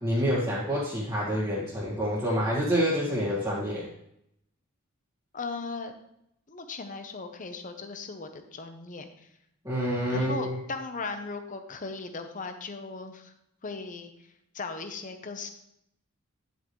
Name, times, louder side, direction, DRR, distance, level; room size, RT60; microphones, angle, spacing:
voice 1, 0.0-3.9 9.6-10.6, equal, 20° right, -9 dB, 1.8 m, -27 dB
voice 2, 5.3-5.9 6.5-9.3 10.1-13.3 13.6-15.5, left 4 dB, 35° left, 7 dB, 0.8 m, -38 dB
9.9 x 8.1 x 3.2 m, 0.78 s
head